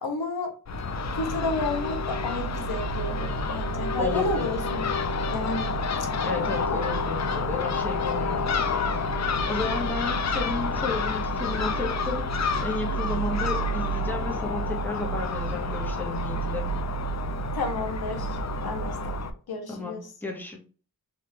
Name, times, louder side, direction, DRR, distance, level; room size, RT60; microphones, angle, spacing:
voice 1, 0.0-0.5 1.1-4.9 5.3-5.7 17.5-18.4 18.6-19.1 19.5-20.1, left 3 dB, 80° left, 5 dB, 0.8 m, -31 dB
Crow / Gull seagull, 0.7-19.3, left 2 dB, 50° left, 0.5 m, -28 dB
voice 2, 4.0-4.5 6.2-8.5 9.5-12.3 12.6-16.7 19.7-20.6, left 3 dB, 5° left, 0 dB, 0.9 m, -33 dB
3.5 x 2.4 x 2.8 m, 0.38 s
wide cardioid pair, 60°, 37 cm